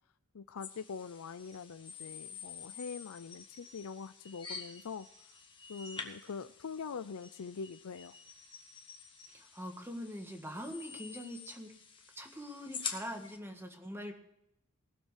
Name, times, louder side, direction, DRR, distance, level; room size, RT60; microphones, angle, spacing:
voice 1, 0.3-5.1 5.7-8.2, left 5 dB, 80° left, 12 dB, 0.5 m, -43 dB
sound 1, 0.6-13.4, left 5 dB, 25° left, 1.5 m, -48 dB
voice 2, 9.3-11.7 12.1-14.1, equal, 10° right, 4 dB, 1.6 m, -43 dB
19.0 x 7.5 x 4.8 m, 0.80 s
head